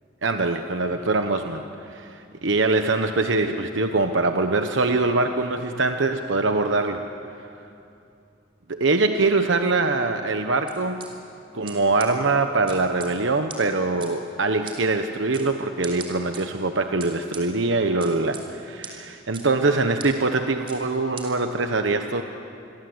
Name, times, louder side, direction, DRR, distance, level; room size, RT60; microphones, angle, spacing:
voice 1, 0.2-1.6 1.9-7.0 8.7-11.0 11.5-22.2, right 3 dB, 85° right, 6 dB, 1.1 m, -23 dB
sound 1, 10.7-11.1 11.7-11.8 12.0-12.1 12.7-13.1 13.5-13.6 14.0-14.1 14.7-14.8 15.3-15.5 15.8-16.4 17.0-17.4 18.0-18.4 18.8-18.9 19.3-19.4 20.0-20.1 20.7-20.8 21.2-21.3, right 6 dB, 30° right, 3.9 m, -38 dB
28.5 x 23.5 x 8.0 m, 2.6 s
head